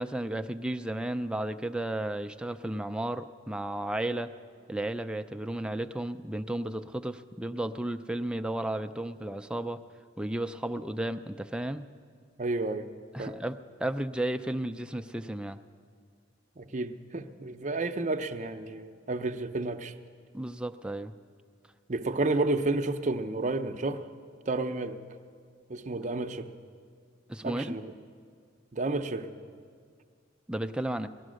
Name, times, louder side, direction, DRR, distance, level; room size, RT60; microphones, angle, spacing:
voice 1, 0.0-4.3 4.7-9.8 10.2-11.9 13.1-15.6 20.3-21.1 27.3-27.8 30.5-31.1, right 1 dB, 5° right, 9 dB, 0.4 m, -33 dB
voice 2, 12.4-12.9 13.2-13.4 16.6-19.9 21.9-24.0 24.5-25.0 25.7-26.5 27.4-27.9 28.7-29.3, right 2 dB, 40° right, 7 dB, 0.7 m, -31 dB
18.5 x 12.5 x 6.4 m, 2.1 s
head